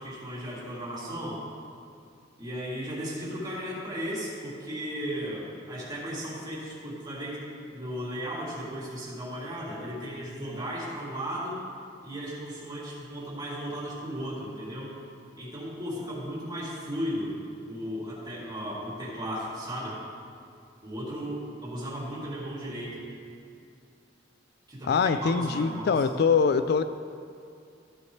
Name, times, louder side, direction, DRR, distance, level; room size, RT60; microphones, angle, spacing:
voice 1, 0.0-1.4 2.4-7.5 7.7-11.6 12.0-14.9 15.4-17.4 17.7-20.0 20.8-23.0 24.7-26.0, equal, 25° right, -7 dB, 3.0 m, -35 dB
voice 2, 24.9-26.8, left 5 dB, 60° left, 11 dB, 0.3 m, -23 dB
14.5 x 10.0 x 3.2 m, 2.4 s
head